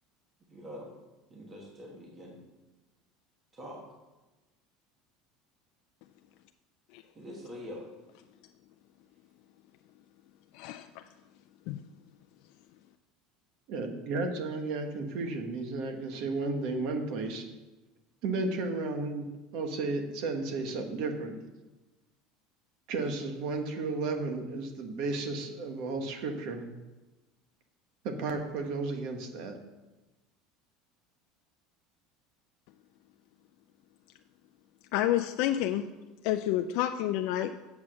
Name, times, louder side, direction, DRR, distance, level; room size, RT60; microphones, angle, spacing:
voice 1, 0.5-0.9 1.3-2.4 3.5-3.8 7.1-7.9, equal, 20° right, -1 dB, 1.3 m, -44 dB
voice 2, 10.5-11.0 11.7-11.8 34.9-35.9 36.2-37.5, left 12 dB, 55° left, 6 dB, 0.4 m, -29 dB
voice 3, 13.7-17.4 18.2-19.3 19.5-21.5 22.9-26.7 28.0-29.6, right 3 dB, 50° right, 5 dB, 1.3 m, -33 dB
8.3 x 7.2 x 6.3 m, 1.1 s
cardioid pair, 175°, 0 cm